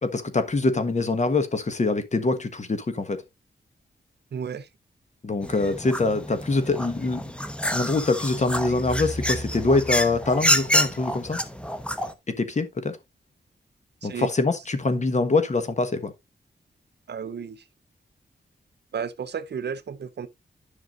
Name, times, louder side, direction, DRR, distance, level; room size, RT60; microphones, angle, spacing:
voice 1, 0.0-3.2 5.2-7.2 7.7-11.4 12.3-13.0 14.0-16.1, left 3 dB, 40° left, 1.3 m, -24 dB
voice 2, 4.3-4.7 14.0-14.3 17.1-17.6 18.9-20.3, right 7 dB, 65° right, 0.7 m, -33 dB
sound 1, 5.4-12.1, equal, 5° left, 0.9 m, -28 dB
10.5 x 6.0 x 2.5 m
wide cardioid pair, 95°, 19 cm